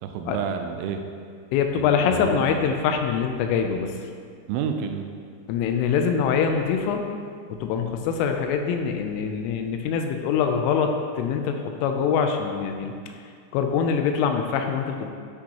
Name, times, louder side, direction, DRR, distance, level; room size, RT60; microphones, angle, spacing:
voice 1, 0.0-1.0 1.8-2.5 4.5-5.1, right 7 dB, 85° right, 5 dB, 3.0 m, -30 dB
voice 2, 1.5-3.9 5.5-7.0 7.6-12.9 13.5-15.1, left 6 dB, 85° left, 5 dB, 3.0 m, -24 dB
13.0 x 6.3 x 2.9 m, 2.2 s
omnidirectional pair, 5.8 m